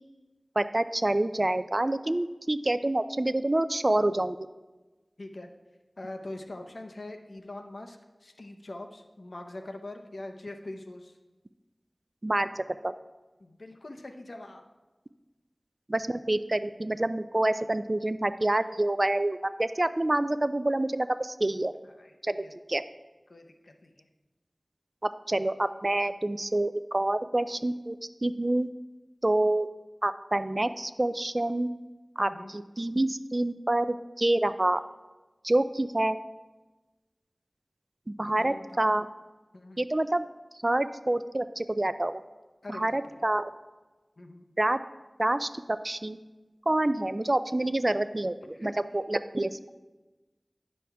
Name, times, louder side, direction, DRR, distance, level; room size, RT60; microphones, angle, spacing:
voice 1, 0.6-4.4 12.2-12.9 15.9-21.7 22.2-22.8 25.0-27.9 28.2-28.7 29.2-29.7 30.0-31.7 32.2-34.8 35.4-36.2 38.2-39.1 39.8-40.3 40.6-42.2 42.7-43.5 44.6-44.8 45.2-46.2 46.7-49.6, right 1 dB, 40° right, 12 dB, 0.3 m, -27 dB
voice 2, 5.2-5.5 6.0-11.2 13.4-14.6 21.8-22.1 22.4-22.5 23.3-24.0 32.2-32.5 38.2-38.8 39.5-39.9 42.6-43.0 44.2-44.4 48.5-48.7, left 2 dB, 75° left, 4 dB, 0.6 m, -43 dB
9.8 x 6.4 x 3.4 m, 1.2 s
wide cardioid pair, 55°, 0 cm